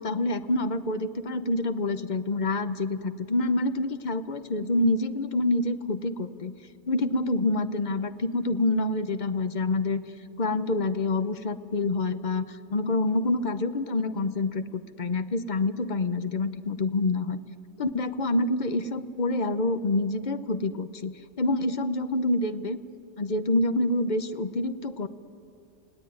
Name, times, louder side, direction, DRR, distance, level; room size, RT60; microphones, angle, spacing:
voice 1, 0.0-6.5 6.9-10.0 10.4-17.4 17.8-21.1 21.4-22.8 23.2-25.1, left 2 dB, 40° left, 11 dB, 0.8 m, -27 dB
30.0 x 17.5 x 9.5 m, 2.5 s
omnidirectional pair, 1.6 m